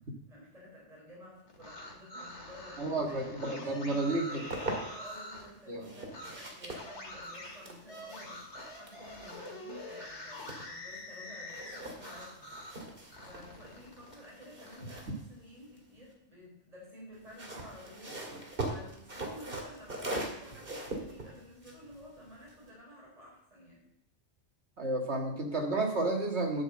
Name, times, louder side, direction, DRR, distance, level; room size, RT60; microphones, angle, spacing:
voice 1, 0.3-3.2 3.7-12.5 13.2-23.8, left 1 dB, 30° right, -5 dB, 4.9 m, -52 dB
sound 1, 1.5-5.5 6.1-6.3 6.7-12.8 13.1-14.8, left 1 dB, 70° left, 2.2 m, -45 dB
voice 2, 2.8-4.4 5.7-5.9 24.8-26.6, right 2 dB, 65° right, 1 dB, 2.2 m, -31 dB
sound 2, 4.1-5.2 5.8-11.2 11.5-16.1 17.1-22.7, right 1 dB, 50° right, 2.4 m, -42 dB
11.5 x 5.7 x 7.7 m, 0.78 s
omnidirectional pair, 1.2 m